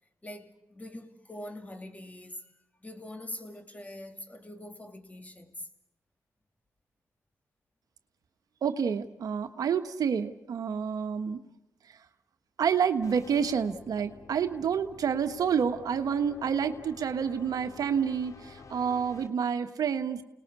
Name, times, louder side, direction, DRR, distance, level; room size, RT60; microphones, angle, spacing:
voice 1, 0.2-2.5 2.8-5.7, left 1 dB, 25° left, 2.9 m, -43 dB
voice 2, 8.6-11.4 12.6-20.2, right 7 dB, 75° right, 1.3 m, -28 dB
sound 1, 13.0-19.3, left 5 dB, 60° left, 2.8 m, -50 dB
29.5 x 19.5 x 8.3 m
cardioid pair, 50°, 6 cm